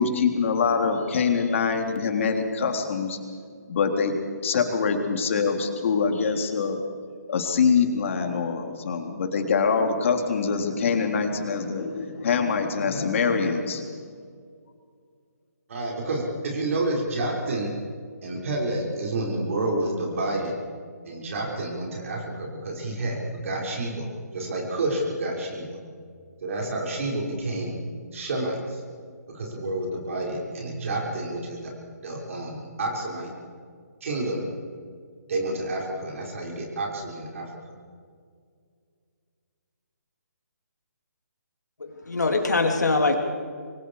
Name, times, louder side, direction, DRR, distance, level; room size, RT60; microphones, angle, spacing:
voice 1, 0.0-3.2 3.7-4.1 4.4-6.8 7.3-13.8, left 5 dB, 50° left, 4 dB, 3.6 m, -24 dB
voice 2, 15.7-17.7 18.2-20.6 21.0-24.1 24.3-25.8 26.4-27.8 28.1-28.8 29.3-31.7 32.0-33.3 34.0-34.4 35.3-37.4, right 2 dB, 50° right, -1 dB, 5.7 m, -29 dB
voice 3, 41.8-43.2, left 3 dB, 80° left, 3 dB, 3.3 m, -23 dB
27.5 x 24.5 x 4.9 m, 2.1 s
figure-of-eight pair, 150°, 9 cm